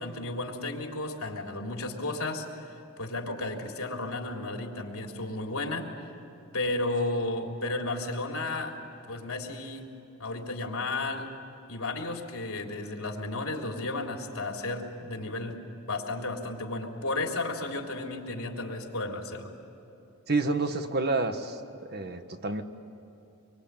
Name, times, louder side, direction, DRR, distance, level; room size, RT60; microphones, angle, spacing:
voice 1, 0.0-2.5 3.0-5.9 6.5-8.8 9.1-9.9 10.2-11.3 11.7-15.6 15.9-19.5, left 2 dB, 80° left, 1 dB, 3.5 m, -33 dB
voice 2, 20.3-22.6, right 3 dB, 50° right, 7 dB, 1.5 m, -29 dB
25.5 x 24.0 x 9.0 m, 2.9 s
head